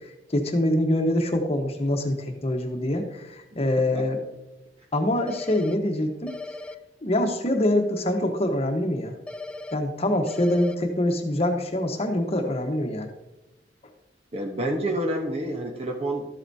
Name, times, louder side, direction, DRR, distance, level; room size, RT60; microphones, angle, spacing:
voice 1, 0.3-4.2 4.9-6.3 7.0-9.1 9.7-13.1, left 1 dB, 35° left, 4 dB, 1.1 m, -25 dB
sound 1, 5.3-5.7 6.3-6.7 9.3-9.7 10.3-10.7, left 2 dB, 5° left, 0.4 m, -37 dB
voice 2, 14.3-16.3, right 1 dB, 35° right, 2 dB, 1.0 m, -28 dB
12.5 x 8.0 x 2.7 m, 0.96 s
head